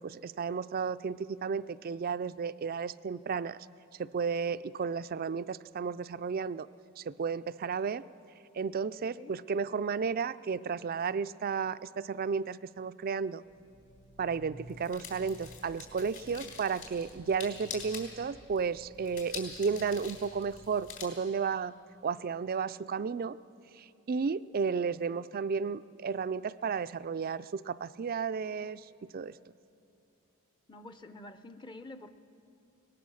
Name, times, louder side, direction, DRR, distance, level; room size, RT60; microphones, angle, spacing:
voice 1, 0.0-3.6 4.0-6.7 7.0-8.0 8.5-13.4 14.2-21.7 22.0-23.4 23.8-28.8 29.1-29.3, right 5 dB, 40° right, 16 dB, 0.4 m, -33 dB
sound 1, 13.5-21.0, left 5 dB, 60° left, 3.8 m, -46 dB
voice 2, 30.7-32.1, left 2 dB, 20° left, 10 dB, 0.6 m, -48 dB
23.0 x 19.0 x 6.4 m, 2.7 s
head